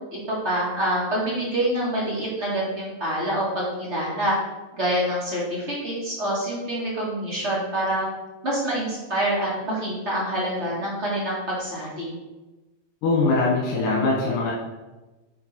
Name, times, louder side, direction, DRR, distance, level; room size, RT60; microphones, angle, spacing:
voice 1, 0.1-4.4 4.7-8.1 8.4-12.1, right 1 dB, 25° right, -6 dB, 2.1 m, -26 dB
voice 2, 13.0-14.5, left 3 dB, 90° left, -4 dB, 2.7 m, -22 dB
8.8 x 3.8 x 4.4 m, 1.1 s
omnidirectional pair, 3.5 m